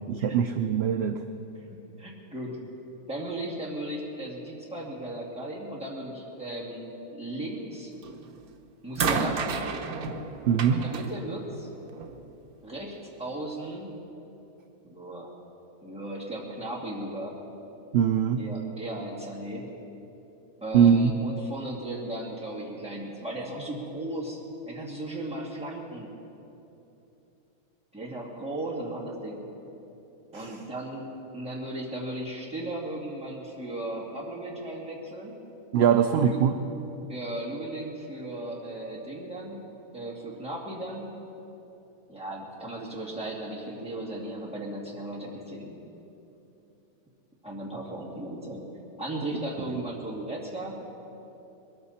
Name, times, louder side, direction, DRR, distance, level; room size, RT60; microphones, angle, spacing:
voice 1, 0.1-1.2 10.5-10.8 17.9-18.4 20.7-21.1 30.3-30.6 35.7-36.5, right 8 dB, 60° right, 7 dB, 0.7 m, -22 dB
voice 2, 1.5-2.6 3.1-7.9 8.8-9.8 10.7-11.7 12.6-13.9 14.8-15.3 15.8-17.4 18.4-19.7 20.6-24.4 24.7-26.1 27.9-29.5 30.3-31.0 31.3-35.4 36.2-36.4 37.1-39.7 39.9-41.1 42.1-45.8 47.4-48.6 49.0-50.8, right 1 dB, 5° right, -5 dB, 2.3 m, -36 dB
sound 1, 8.0-8.4 9.0-12.2 13.2-13.3, right 5 dB, 85° right, 1.3 m, -32 dB
21.5 x 14.0 x 4.2 m, 2.9 s
omnidirectional pair, 1.5 m